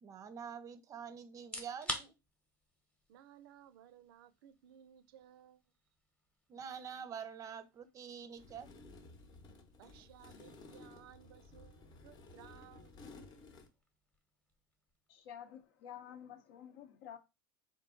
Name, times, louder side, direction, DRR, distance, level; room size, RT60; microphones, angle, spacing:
voice 1, 0.0-2.1 6.5-8.7, right 7 dB, 30° right, 0.5 m, -46 dB
sound 1, 1.4-16.2, equal, 10° left, 0.9 m, -52 dB
voice 2, 3.1-5.7 9.8-13.1, right 10 dB, 80° right, 0.4 m, -59 dB
sound 2, 8.4-13.7, left 3 dB, 35° left, 0.9 m, -55 dB
voice 3, 15.1-17.2, left 9 dB, 70° left, 0.8 m, -50 dB
3.8 x 2.6 x 3.7 m
supercardioid pair, 130°, 12 cm